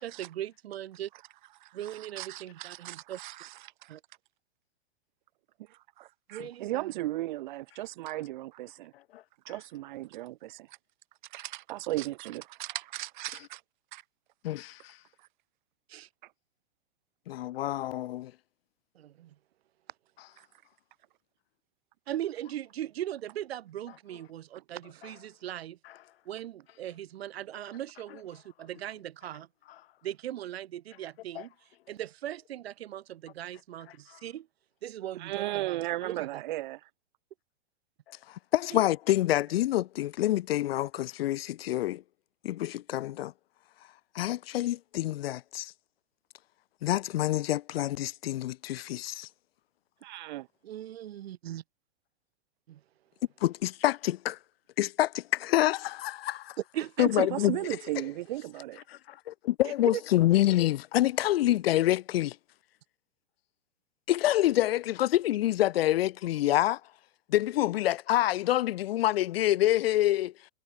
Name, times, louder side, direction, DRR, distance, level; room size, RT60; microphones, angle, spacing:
voice 1, 0.0-1.1 1.7-3.2 3.9-4.0 6.3-6.9 15.9-16.1 18.9-19.3 22.1-25.8 26.3-29.5 30.0-31.5 31.9-34.5 34.8-36.4 38.7-38.8 50.6-51.6 52.7-52.8 56.7-57.3 59.6-60.0, right 12 dB, 65° right, 1.1 m, -39 dB
voice 2, 1.6-3.9 5.7-8.9 9.4-10.8 11.3-13.6 13.9-14.0 35.2-36.8 50.0-50.5 57.0-58.8, right 16 dB, 45° right, 1.6 m, -36 dB
voice 3, 14.4-14.9 17.3-18.3 31.4-31.5 38.3-42.0 42.4-43.3 44.1-45.7 46.8-49.3 53.4-54.4 54.8-56.6 57.0-57.6 58.9-62.4 64.1-66.8 67.3-70.3, left 14 dB, 65° left, 0.4 m, -27 dB
hypercardioid pair, 160°, 33 cm